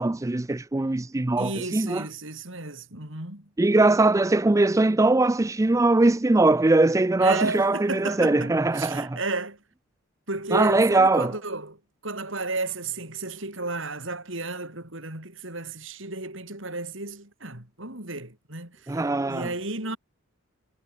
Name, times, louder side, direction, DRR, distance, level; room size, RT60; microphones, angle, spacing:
voice 1, 0.0-2.1 3.6-9.2 10.5-11.3 18.9-19.5, right 2 dB, 15° right, 0.4 m, -21 dB
voice 2, 1.4-3.5 7.2-9.6 10.3-19.0 19.3-20.0, right 3 dB, 65° right, 6.9 m, -33 dB
head